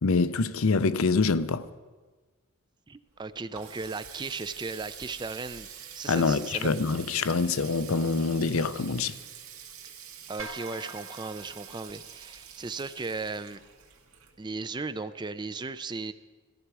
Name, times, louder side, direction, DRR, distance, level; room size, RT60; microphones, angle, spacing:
voice 1, 0.0-1.7 6.1-9.2, left 4 dB, 75° left, 0.6 m, -25 dB
voice 2, 2.9-5.7 5.9-6.7 10.3-13.6 14.4-16.1, right 4 dB, 20° right, 0.4 m, -36 dB
Water tap faucet, 3.1-14.8, right 8 dB, 80° right, 2.0 m, -46 dB
sound 1, 10.4-12.8, right 3 dB, 60° right, 1.5 m, -45 dB
18.0 x 14.5 x 4.8 m
head